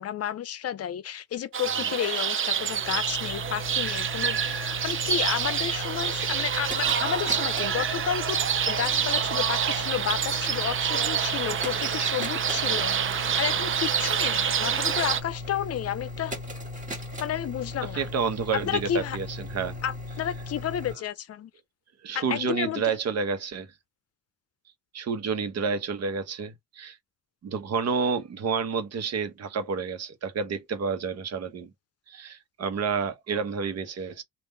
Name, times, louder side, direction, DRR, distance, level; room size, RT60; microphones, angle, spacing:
voice 1, 0.0-8.4 8.7-16.4 17.2-18.1 18.7-19.2 19.8-21.5 22.1-22.8, left 10 dB, 55° left, 0.6 m, -31 dB
sound 1, 1.5-15.2, right 8 dB, 45° right, 0.6 m, -27 dB
sound 2, 2.5-21.0, left 2 dB, 25° right, 2.1 m, -38 dB
voice 2, 17.9-19.8 22.0-23.7 24.9-27.0 27.4-31.7 32.1-34.2, right 5 dB, 60° right, 1.1 m, -29 dB
3.6 x 2.5 x 3.8 m
cardioid pair, 90°, 30 cm